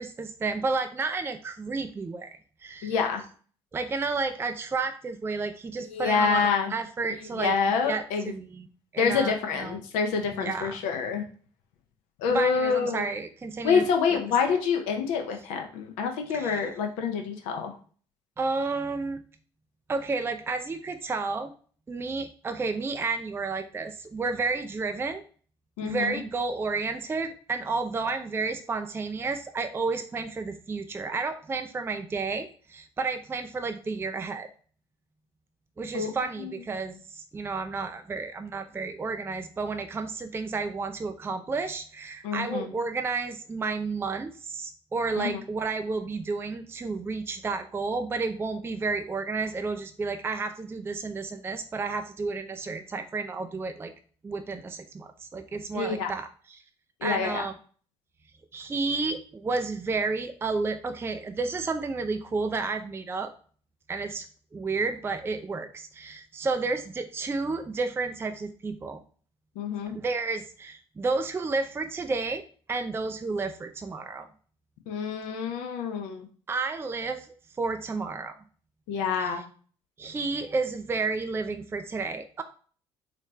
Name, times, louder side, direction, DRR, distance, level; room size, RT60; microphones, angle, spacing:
voice 1, 0.0-2.9 3.7-7.5 7.9-9.8 10.4-10.8 12.3-14.2 16.3-16.7 18.4-19.2 19.9-21.5 21.9-25.2 25.8-34.5 35.8-53.9 54.2-56.6 57.0-57.5 58.5-63.3 63.9-64.3 64.5-69.0 69.9-72.4 72.7-74.3 76.5-78.4 79.2-79.4 80.0-82.4, right 4 dB, 15° right, 7 dB, 0.4 m, -31 dB
voice 2, 2.8-3.2 5.9-6.7 7.4-8.3 9.0-11.2 12.2-13.0 13.6-17.7 25.8-26.2 35.9-36.1 36.4-36.5 42.2-42.7 45.2-45.4 55.7-56.1 57.0-57.4 69.6-70.0 74.9-76.3 78.9-79.4, left 6 dB, 60° left, 4 dB, 0.7 m, -27 dB
4.1 x 2.7 x 3.2 m, 0.43 s
figure-of-eight pair, 50°, 14 cm